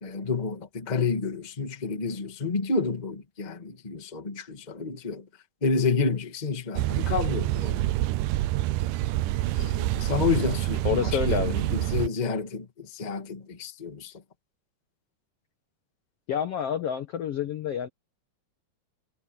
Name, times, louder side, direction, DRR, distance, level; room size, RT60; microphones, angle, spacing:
voice 1, 0.0-5.2 5.6-7.9 9.5-14.1, left 4 dB, 20° left, 1.2 m, -29 dB
sound 1, 6.7-12.1, right 16 dB, 75° right, 2.0 m, -27 dB
voice 2, 10.8-11.5 16.3-17.9, left 8 dB, 65° left, 1.6 m, -28 dB
omnidirectional pair, 4.3 m